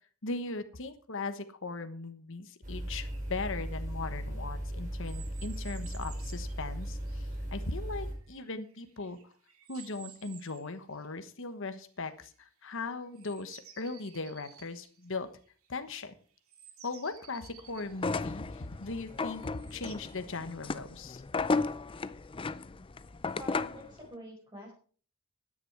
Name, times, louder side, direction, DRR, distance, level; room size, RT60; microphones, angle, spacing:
voice 1, 0.2-9.3 9.7-15.3 15.7-16.1 16.8-21.2, left 3 dB, 60° left, 9 dB, 1.2 m, -39 dB
sound 1, 2.6-8.1, right 1 dB, 35° right, 5.3 m, -37 dB
sound 2, 2.9-3.6 5.0-7.6 8.1-11.1 11.7-12.3 12.7-16.1 16.5-20.0, right 9 dB, 75° right, 2.4 m, -55 dB
sound 3, 17.9-23.9, left 3 dB, 25° left, 0.5 m, -34 dB
voice 2, 23.4-24.7, left 1 dB, 20° right, -4 dB, 5.0 m, -46 dB
13.5 x 10.0 x 4.7 m, 0.43 s
head